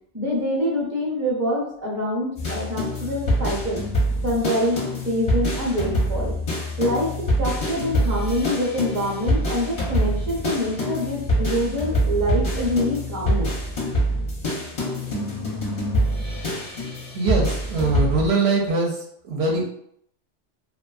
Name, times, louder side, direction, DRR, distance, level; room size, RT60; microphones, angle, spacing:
voice 1, 0.1-3.8 4.2-4.8 5.0-7.1 7.4-13.5, equal, 20° right, -4 dB, 0.5 m, -25 dB
sound 1, 2.4-18.3, equal, 45° left, 0.5 m, -25 dB
voice 2, 17.1-19.6, right 3 dB, 65° right, -1 dB, 0.8 m, -22 dB
2.5 x 2.2 x 2.4 m, 0.68 s
omnidirectional pair, 1.2 m